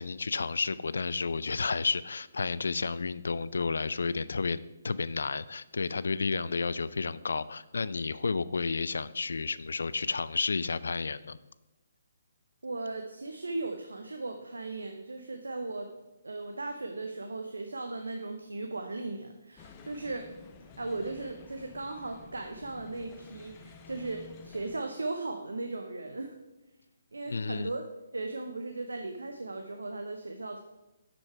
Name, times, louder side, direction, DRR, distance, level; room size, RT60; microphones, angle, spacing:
voice 1, 0.0-11.4 27.3-27.7, left 4 dB, 70° left, 17 dB, 0.3 m, -31 dB
voice 2, 12.6-15.9 16.2-20.3 20.8-26.4 27.1-27.9 28.1-30.6, right 2 dB, 80° right, 6 dB, 0.7 m, -37 dB
sound 1, 19.6-24.8, left 5 dB, 25° left, 0.6 m, -51 dB
6.5 x 6.0 x 4.6 m, 1.0 s
figure-of-eight pair, 140°, 0 cm